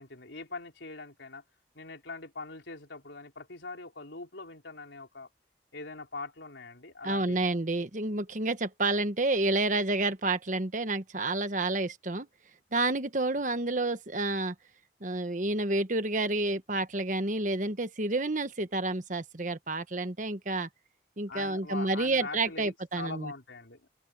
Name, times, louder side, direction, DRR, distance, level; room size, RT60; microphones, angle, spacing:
voice 1, 0.0-1.4 1.7-5.3 5.7-7.5 21.3-23.8, left 3 dB, 85° left, 4.0 m, -42 dB
voice 2, 7.0-12.3 12.7-14.5 15.0-20.7 21.2-23.3, right 2 dB, 45° right, 1.3 m, -29 dB
head